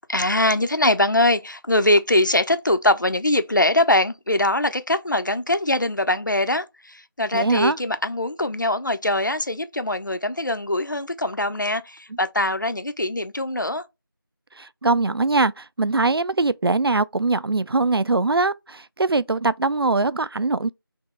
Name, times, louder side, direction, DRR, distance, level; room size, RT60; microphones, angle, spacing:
voice 1, 0.1-13.8, left 1 dB, 55° left, 0.6 m, -22 dB
voice 2, 7.3-7.8 14.6-20.7, right 3 dB, 80° right, 0.4 m, -22 dB
3.4 x 3.0 x 3.6 m
figure-of-eight pair, 180°, 12 cm